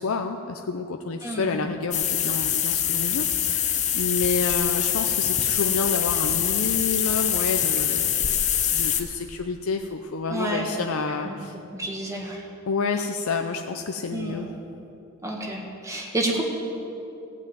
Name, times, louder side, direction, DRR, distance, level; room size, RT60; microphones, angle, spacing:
voice 1, 0.0-3.7 3.9-8.1 8.7-11.5 12.7-14.5, left 4 dB, 85° left, 5 dB, 0.6 m, -29 dB
voice 2, 1.2-1.6 10.3-10.7 11.2-11.4 11.7-12.4 14.1-14.4 15.2-16.4, right 1 dB, 15° right, -1 dB, 1.7 m, -29 dB
sound 1, 1.9-9.0, left 9 dB, 35° left, 0.7 m, -24 dB
16.0 x 5.9 x 9.2 m, 2.8 s
head